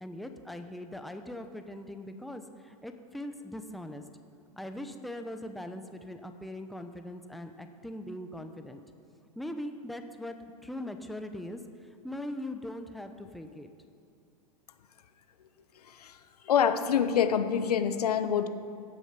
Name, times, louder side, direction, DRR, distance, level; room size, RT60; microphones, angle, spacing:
voice 1, 0.0-4.0 4.6-8.8 9.4-10.4 10.6-11.6 12.0-13.7, left 1 dB, ahead, 6 dB, 0.7 m, -40 dB
voice 2, 15.9-16.2 16.4-18.5, left 8 dB, 85° left, 10 dB, 0.9 m, -26 dB
15.5 x 8.0 x 5.8 m, 2.5 s
hypercardioid pair, 120°, 19 cm